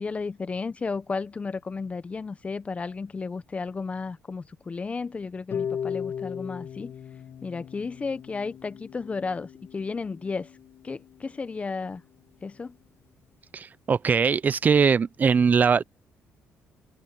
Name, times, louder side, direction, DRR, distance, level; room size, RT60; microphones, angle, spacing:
voice 1, 0.0-6.9 7.4-10.5 10.8-12.0 12.4-12.7, left 4 dB, 30° left, 0.8 m, -33 dB
Harp, 5.5-11.6, left 8 dB, 55° left, 1.6 m, -37 dB
voice 2, 13.5-15.8, right 6 dB, 35° right, 0.7 m, -21 dB
cardioid pair, 90°, 5 cm